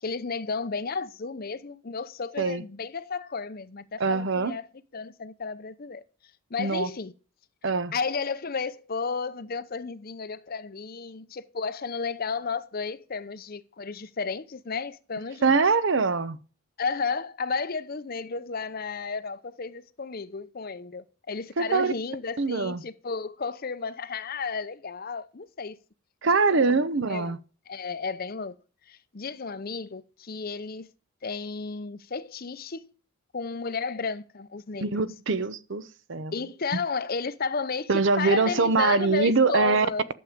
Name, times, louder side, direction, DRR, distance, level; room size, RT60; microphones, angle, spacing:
voice 1, 0.0-4.7 4.9-6.0 6.5-7.1 7.9-15.6 16.8-25.8 26.2-27.4 27.7-28.5 28.9-30.9 31.2-32.9 33.3-35.1 36.3-40.1, left 4 dB, 45° left, 0.7 m, -33 dB
voice 2, 4.0-4.5 6.6-6.9 7.6-7.9 15.4-16.4 21.6-21.9 22.4-22.8 26.2-27.4 34.8-35.8 36.1-36.3 37.9-39.9, right 4 dB, 60° right, 0.8 m, -23 dB
12.0 x 7.4 x 5.1 m
head